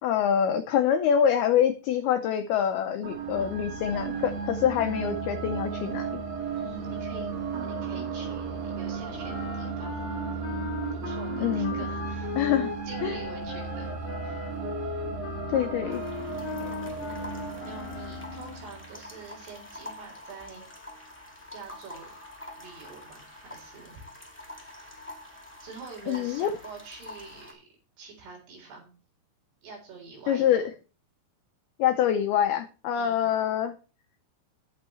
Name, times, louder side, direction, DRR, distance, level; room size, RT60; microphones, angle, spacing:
voice 1, 0.0-6.2 11.4-11.8 12.4-12.7 13.0-13.2 15.5-16.0 26.1-26.5 30.3-30.6 31.8-33.7, left 9 dB, 90° left, 7 dB, 2.2 m, -25 dB
sound 1, 3.0-19.2, right 5 dB, 80° right, 1.5 m, -34 dB
voice 2, 6.6-7.3 7.6-10.0 10.9-12.3 12.9-14.5 17.6-20.6 21.5-22.1 22.6-24.0 24.5-24.9 25.6-27.7 28.0-28.9 29.6-30.6 32.9-33.3, right 4 dB, 60° right, -1 dB, 5.7 m, -46 dB
sound 2, 9.2-18.8, left 8 dB, 70° left, 2.2 m, -39 dB
sound 3, 15.9-27.5, left 1 dB, 10° left, 0.7 m, -46 dB
18.5 x 6.5 x 3.2 m, 0.34 s
omnidirectional pair, 5.6 m